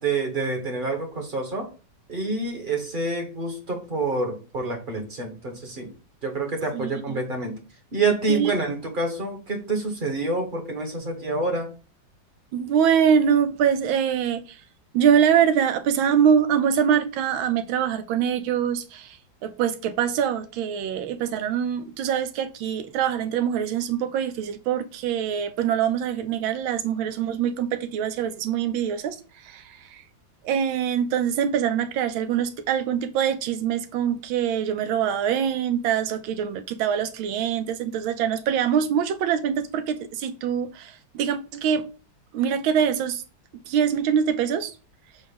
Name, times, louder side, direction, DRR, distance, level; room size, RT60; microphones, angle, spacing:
voice 1, 0.0-1.7 2.1-5.9 6.2-7.6 7.9-11.7, right 3 dB, 30° right, 1.2 m, -27 dB
voice 2, 6.7-7.2 8.3-8.5 12.5-14.6 14.9-19.2 19.4-29.2 29.4-30.0 30.4-41.9 42.3-43.2 43.7-44.7, right 8 dB, 85° right, 1.5 m, -24 dB
7.2 x 2.4 x 5.3 m
omnidirectional pair, 2.1 m